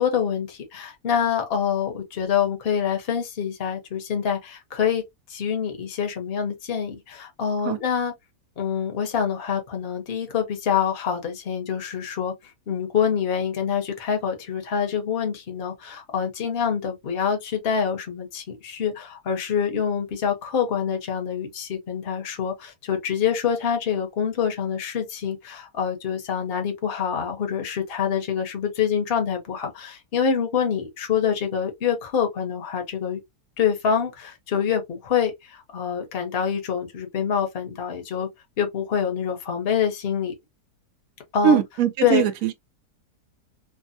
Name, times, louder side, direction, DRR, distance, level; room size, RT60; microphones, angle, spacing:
voice 1, 0.0-5.0 5.3-8.1 8.6-12.3 12.7-33.2 33.6-38.3 38.6-40.3 41.3-41.6 42.0-42.2, left 7 dB, 40° left, 1.0 m, -26 dB
voice 2, 41.4-42.6, right 9 dB, 65° right, 0.9 m, -21 dB
3.4 x 2.1 x 2.6 m
omnidirectional pair, 1.8 m